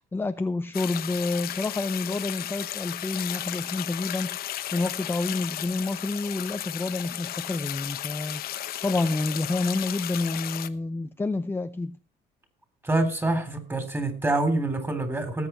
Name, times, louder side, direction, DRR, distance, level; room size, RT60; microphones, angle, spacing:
voice 1, 0.0-8.4 8.8-12.0, left 3 dB, 15° left, 0.6 m, -29 dB
sound 1, 0.7-10.7, left 12 dB, 65° left, 1.0 m, -34 dB
voice 2, 12.8-15.5, right 2 dB, 15° right, 3.6 m, -26 dB
19.0 x 8.3 x 4.5 m
cardioid pair, 110°, 17 cm